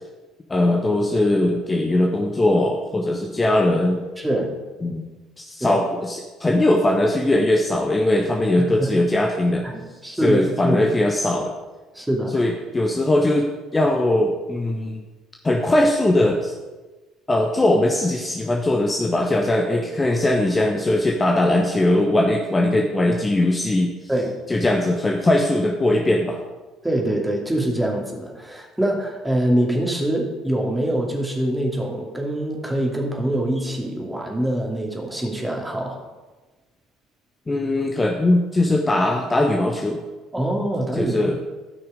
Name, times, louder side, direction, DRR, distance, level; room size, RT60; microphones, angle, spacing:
voice 1, 0.5-4.0 4.8-5.0 5.4-9.7 10.1-11.5 12.3-15.1 15.4-16.5 17.3-23.9 24.5-26.4 37.5-40.0 41.0-41.4, left 1 dB, 20° left, 2 dB, 1.0 m, -20 dB
voice 2, 4.2-4.5 5.6-5.8 8.8-8.9 9.7-10.8 11.9-12.4 24.1-24.3 26.8-36.0 40.3-41.4, right 1 dB, 10° right, 0 dB, 2.5 m, -24 dB
13.0 x 6.0 x 5.1 m, 1.2 s
figure-of-eight pair, 55°, 0 cm